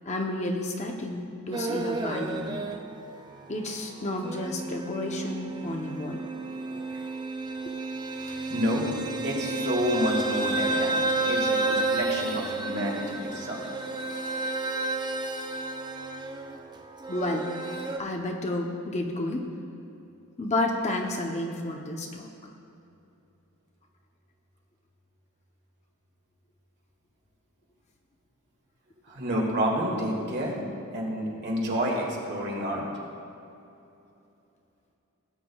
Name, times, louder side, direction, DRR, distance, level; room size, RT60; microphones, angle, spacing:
voice 1, 0.0-2.7 3.5-6.2 17.1-17.5 18.0-19.5 20.4-22.3, left 1 dB, 30° left, 1 dB, 0.8 m, -31 dB
sound 1, 1.5-3.0 3.5-18.0, right 2 dB, 20° right, 0.5 m, -31 dB
voice 2, 8.1-8.9 9.2-11.0 11.3-13.6 29.1-30.6 30.9-32.8, equal, 50° right, -2 dB, 2.1 m, -29 dB
18.0 x 9.1 x 2.3 m, 2.8 s
head